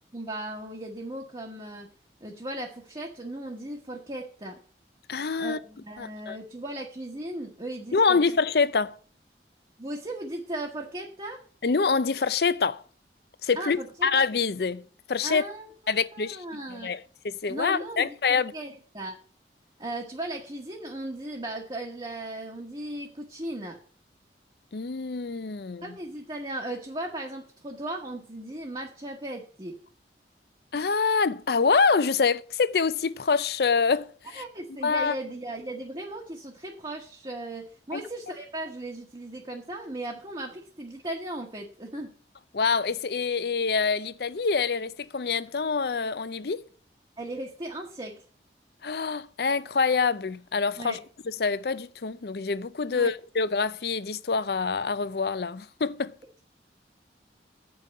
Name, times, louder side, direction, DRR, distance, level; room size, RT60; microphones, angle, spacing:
voice 1, 0.1-4.6 5.4-8.2 9.8-11.4 13.5-14.1 15.2-16.9 17.5-19.2 19.8-23.8 25.8-29.8 34.3-42.1 47.2-48.2 50.8-51.0 52.9-53.1, right 1 dB, 25° right, 1.2 m, -37 dB
voice 2, 5.1-5.6 6.0-6.4 7.9-9.0 11.6-12.8 13.4-15.4 15.9-16.4 16.7-17.0 17.2-18.5 24.7-25.9 30.7-34.4 34.8-35.1 37.9-38.0 42.5-46.6 48.8-51.0 51.3-56.1, left 5 dB, 65° left, 0.6 m, -26 dB
8.2 x 5.6 x 7.5 m
head